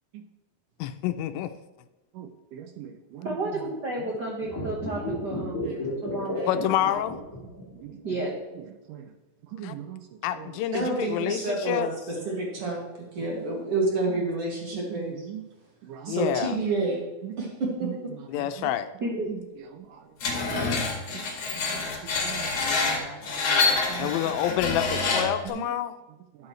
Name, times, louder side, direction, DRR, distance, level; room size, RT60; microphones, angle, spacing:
voice 1, 0.8-1.5 6.5-7.2 9.6-9.8 10.2-11.9 16.1-16.6 18.3-18.9 24.0-26.0, left 11 dB, 85° left, 10 dB, 2.3 m, -28 dB
voice 2, 2.2-3.3 6.1-6.3 7.8-8.0 8.9-9.0 9.5-10.0 14.9-15.0 15.3-15.4 15.9-16.1 17.2-17.3 18.6-18.7 20.3-20.4 21.7-21.8 22.2-22.4 22.9-23.6 23.9-24.1, right 11 dB, 75° right, 7 dB, 2.1 m, -40 dB
voice 3, 3.2-5.7 6.0-6.6 8.0-8.3 19.0-19.3 21.1-21.2, right 2 dB, 60° right, -3 dB, 1.0 m, -32 dB
sound 1, 4.4-8.1, left 2 dB, 25° left, 2.4 m, -33 dB
voice 4, 10.7-12.8 13.1-15.1 16.0-17.0 17.4-18.1, right 2 dB, 45° right, -2 dB, 2.9 m, -29 dB
Screech, 20.2-25.5, left 4 dB, 50° left, 2.7 m, -27 dB
12.5 x 9.6 x 3.2 m, 1.1 s
omnidirectional pair, 4.1 m